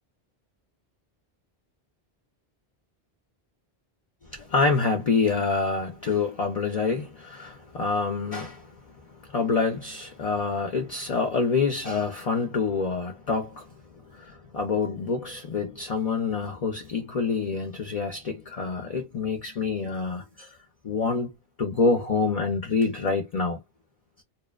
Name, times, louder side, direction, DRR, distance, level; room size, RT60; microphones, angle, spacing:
voice 1, 4.3-20.6 20.8-21.3 21.6-23.6, left 4 dB, 50° left, 0.5 m, -27 dB
2.8 x 2.1 x 2.3 m
omnidirectional pair, 1.0 m